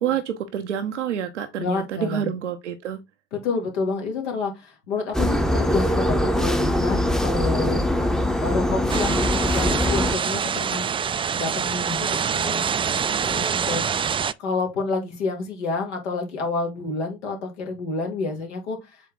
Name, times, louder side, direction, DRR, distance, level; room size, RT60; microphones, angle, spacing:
voice 1, 0.0-3.0, right 9 dB, 85° right, 0.7 m, -28 dB
voice 2, 1.6-2.3 3.3-7.8 8.4-10.9 11.3-19.1, left 4 dB, 80° left, 2.1 m, -29 dB
sound 1, 5.1-10.1, left 1 dB, ahead, 0.8 m, -22 dB
sound 2, 8.9-14.3, right 7 dB, 15° right, 0.3 m, -25 dB
7.5 x 3.7 x 3.6 m
figure-of-eight pair, 60°, 35 cm